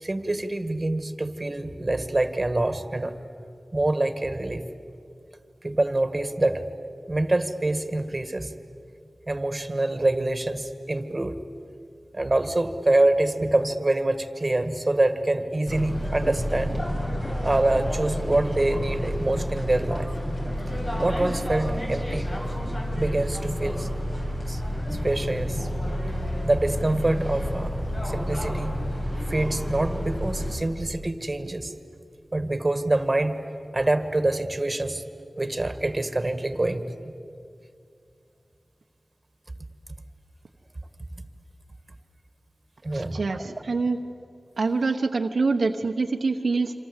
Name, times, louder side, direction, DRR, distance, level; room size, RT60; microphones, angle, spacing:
voice 1, 0.0-3.1 3.7-4.6 5.6-6.6 7.1-8.5 9.3-11.4 12.1-16.7 17.4-20.1 20.7-22.3 22.9-23.9 24.5-24.6 24.9-25.7 26.4-27.8 28.0-28.8 29.3-31.7 32.3-33.4 33.7-35.0 35.4-37.1 42.8-43.5, right 2 dB, 35° right, 10 dB, 1.9 m, -25 dB
sound 1, 15.7-30.6, equal, 40° left, 7.2 m, -29 dB
voice 2, 42.9-44.0 44.6-46.7, right 4 dB, 80° right, 4 dB, 1.0 m, -25 dB
27.0 x 26.0 x 8.3 m, 2.5 s
cardioid pair, 45°, 0 cm